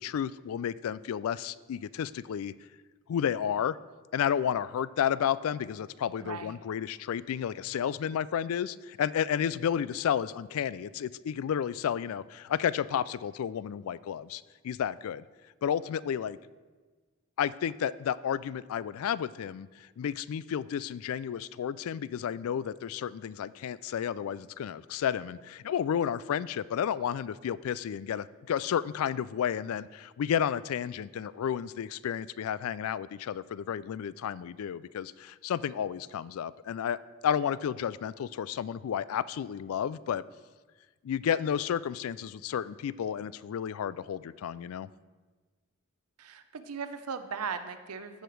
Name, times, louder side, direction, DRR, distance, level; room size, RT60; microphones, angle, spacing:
voice 1, 0.0-2.5 3.1-3.8 4.1-15.2 15.6-16.4 17.4-40.2 41.0-44.9, left 8 dB, 75° left, 19 dB, 0.3 m, -32 dB
voice 2, 6.2-6.6 46.2-48.2, right 5 dB, 85° right, 10 dB, 0.7 m, -38 dB
14.5 x 5.0 x 4.6 m, 1.3 s
head